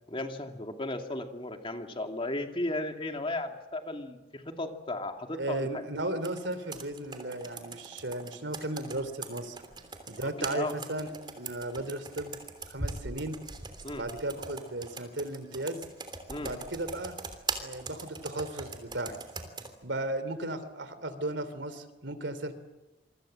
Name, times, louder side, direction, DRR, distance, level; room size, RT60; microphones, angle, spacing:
voice 1, 0.1-5.8 10.2-10.7 13.8-14.0 16.3-16.5, left 2 dB, 30° left, 4 dB, 2.5 m, -35 dB
voice 2, 5.4-9.6 10.1-11.1 11.4-12.4 12.7-13.4 13.9-15.8 16.4-17.2 17.6-19.2 19.8-22.5, right 1 dB, 80° right, 13 dB, 2.9 m, -35 dB
Computer keyboard, 6.2-19.7, right 4 dB, 25° right, 3.2 m, -41 dB
27.5 x 24.5 x 7.8 m, 1.0 s
head